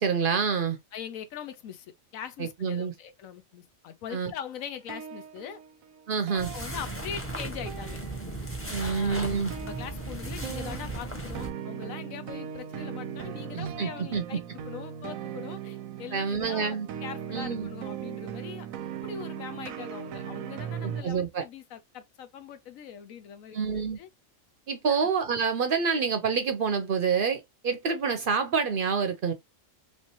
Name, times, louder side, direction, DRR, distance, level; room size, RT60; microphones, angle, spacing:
voice 1, 0.0-0.8 2.4-2.9 4.1-4.3 6.1-6.5 8.7-9.5 13.5-14.2 16.1-16.9 17.3-17.7 20.8-21.4 23.5-24.0 24.7-29.3, right 5 dB, 55° right, 0.6 m, -27 dB
voice 2, 0.9-5.6 6.5-8.0 8.8-18.7 19.0-23.6 24.0-24.1 24.9-25.1, left 8 dB, 90° left, 1.1 m, -41 dB
sound 1, 4.8-7.4 7.7-8.7 9.5-21.0, right 9 dB, 90° right, 1.0 m, -39 dB
sound 2, 6.4-11.5, right 2 dB, 10° left, 0.8 m, -36 dB
3.3 x 3.2 x 2.8 m
omnidirectional pair, 1.4 m